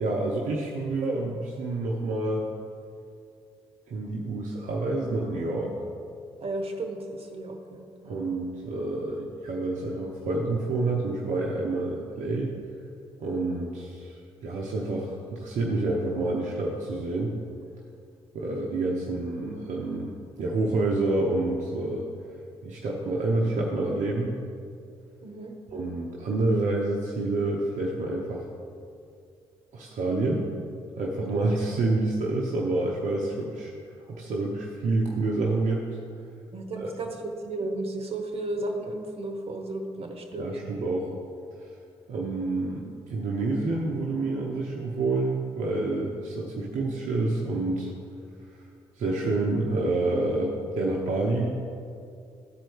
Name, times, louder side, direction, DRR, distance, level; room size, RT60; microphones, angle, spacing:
voice 1, 0.0-2.5 3.9-5.7 8.0-12.6 13.2-14.2 14.4-17.4 18.3-20.1 20.4-22.0 22.6-24.4 25.7-28.5 29.7-30.5 31.0-33.7 34.1-35.8 36.8-36.9 40.4-41.1 41.6-41.7 42.1-47.9 49.0-51.6, right 2 dB, 60° right, -2 dB, 0.9 m, -28 dB
voice 2, 6.4-8.2 25.2-25.5 31.3-31.4 36.5-40.5, right 2 dB, 45° right, 3 dB, 1.2 m, -34 dB
12.5 x 4.5 x 4.6 m, 2.4 s
figure-of-eight pair, 40°, 14 cm